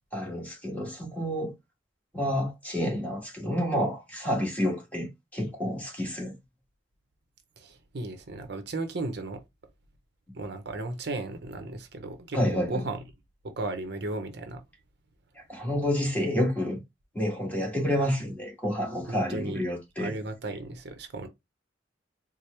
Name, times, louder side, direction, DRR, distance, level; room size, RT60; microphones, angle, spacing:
voice 1, 0.1-1.5 2.1-6.3 12.3-12.8 15.5-16.8 17.1-20.1, equal, 10° left, 1.4 m, -29 dB
voice 2, 7.6-9.4 10.3-13.0 13.6-14.6 19.1-19.6 20.0-21.3, right 2 dB, 65° right, 0.7 m, -35 dB
4.4 x 2.0 x 3.2 m
head